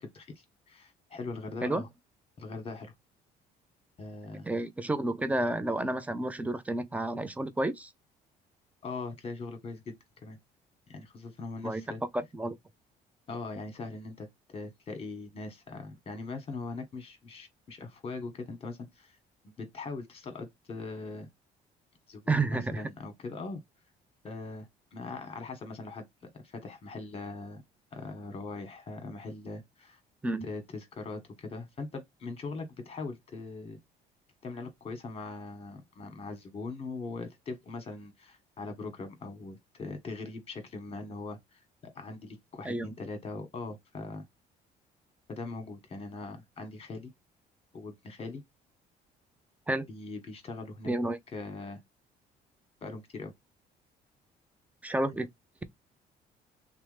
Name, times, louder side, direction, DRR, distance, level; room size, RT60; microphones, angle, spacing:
voice 1, 0.0-1.9 2.4-2.9 4.0-4.5 8.8-9.9 10.2-10.4 10.9-12.0 13.3-19.2 19.6-21.3 22.1-23.6 24.2-27.6 27.9-30.0 30.4-33.8 34.4-44.3 45.3-47.1 47.7-48.4 49.9-50.9 51.3-51.8 52.8-53.3, left 3 dB, 35° left, 1.1 m, -41 dB
voice 2, 4.4-7.9 11.6-11.8 12.1-12.6 22.3-22.8 30.2-30.4 42.6-42.9 49.7-49.9 50.9-51.2 54.8-55.3, right 2 dB, 10° right, 0.4 m, -30 dB
3.0 x 2.0 x 3.2 m
cardioid pair, 110°, 17 cm